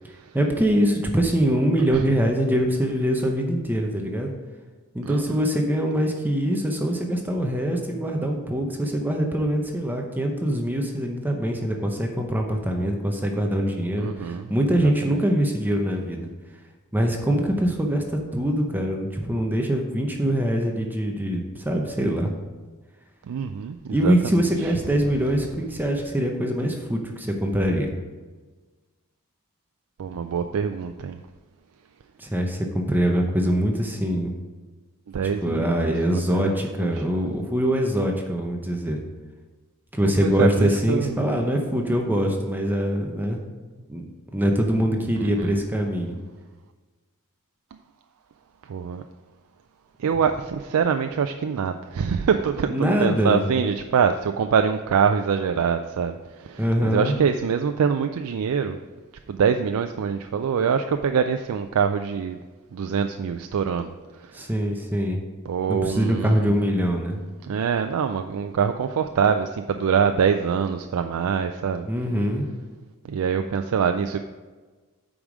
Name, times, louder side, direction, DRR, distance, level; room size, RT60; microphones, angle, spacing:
voice 1, 0.3-4.3 4.9-16.3 16.9-22.3 23.9-27.9 32.2-34.3 35.2-39.0 39.9-43.4 43.9-46.2 52.7-53.4 56.6-57.1 64.3-65.2 65.7-67.2 71.9-72.5, equal, 10° right, 2 dB, 0.7 m, -23 dB
voice 2, 5.0-5.4 14.0-14.5 14.8-15.2 23.3-24.7 30.0-31.2 35.1-36.5 36.8-36.9 40.0-41.3 45.2-45.6 48.7-49.0 50.0-58.8 59.3-62.4 62.7-64.5 65.5-66.5 67.5-71.9 73.0-74.2, right 6 dB, 70° right, 7 dB, 0.4 m, -25 dB
8.8 x 4.9 x 5.0 m, 1.3 s
head